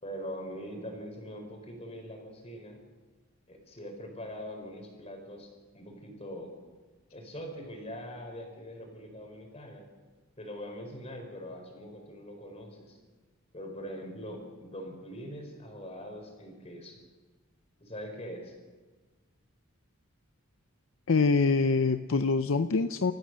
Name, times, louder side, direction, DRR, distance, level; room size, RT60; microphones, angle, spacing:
voice 1, 0.0-2.8 3.5-6.5 7.1-9.8 10.4-13.0 13.5-17.0 17.8-18.5, equal, 30° left, 3 dB, 4.7 m, -42 dB
voice 2, 21.1-23.1, left 4 dB, 65° left, 9 dB, 0.6 m, -25 dB
28.5 x 14.5 x 6.4 m, 1.3 s
head